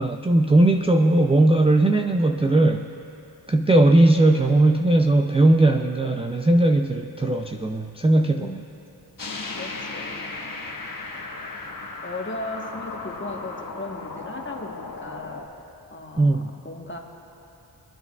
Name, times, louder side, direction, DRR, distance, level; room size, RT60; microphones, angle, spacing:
voice 1, 0.0-2.8 3.5-8.5 16.2-16.5, right 2 dB, 15° right, 4 dB, 0.4 m, -18 dB
sound 1, 9.2-15.5, left 3 dB, 50° left, 1.3 m, -36 dB
voice 2, 9.5-10.3 12.0-15.5 15.9-17.0, left 2 dB, 25° left, 1 dB, 1.2 m, -36 dB
26.5 x 9.7 x 2.3 m, 2.8 s
cardioid pair, 55°, 42 cm